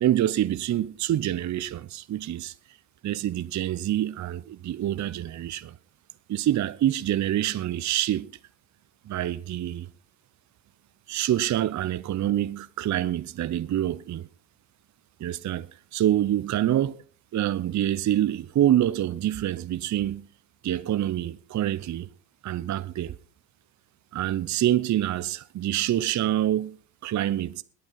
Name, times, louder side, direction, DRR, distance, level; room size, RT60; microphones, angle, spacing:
voice 1, 0.0-2.5 3.0-5.8 6.3-8.3 9.1-9.9 11.1-14.3 15.2-17.0 17.3-20.3 20.6-22.1 22.4-23.1 24.1-26.7 27.0-27.6, right 12 dB, 35° right, 0.8 m, -26 dB
22.0 x 8.8 x 4.0 m
hypercardioid pair, 60°, 47 cm